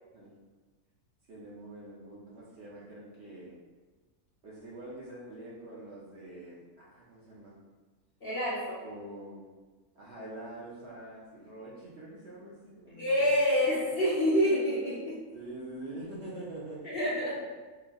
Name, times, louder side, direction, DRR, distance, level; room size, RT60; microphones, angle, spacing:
voice 1, 1.3-3.6 4.4-7.6 8.8-9.5 9.9-13.7 15.3-17.1, right 1 dB, 55° right, -6 dB, 0.8 m, -45 dB
voice 2, 8.2-8.8 13.0-15.2 16.8-17.3, equal, 50° left, -7 dB, 0.8 m, -27 dB
3.5 x 3.4 x 2.3 m, 1.3 s
omnidirectional pair, 1.6 m